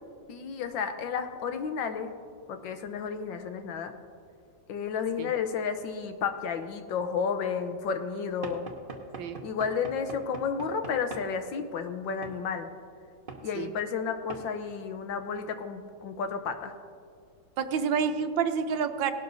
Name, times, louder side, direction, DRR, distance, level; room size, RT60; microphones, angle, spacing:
voice 1, 0.3-2.1 2.5-3.9 4.7-8.7 9.4-12.7 13.4-16.7, left 6 dB, 75° left, 7 dB, 1.5 m, -32 dB
Knock / Wood, 8.4-11.3 12.2-12.4 13.3-13.5 14.3-14.5, right 4 dB, 45° right, 0.7 m, -42 dB
voice 2, 17.6-19.1, right 6 dB, 75° right, 8 dB, 1.3 m, -28 dB
18.5 x 11.5 x 2.6 m, 2.2 s
omnidirectional pair, 2.1 m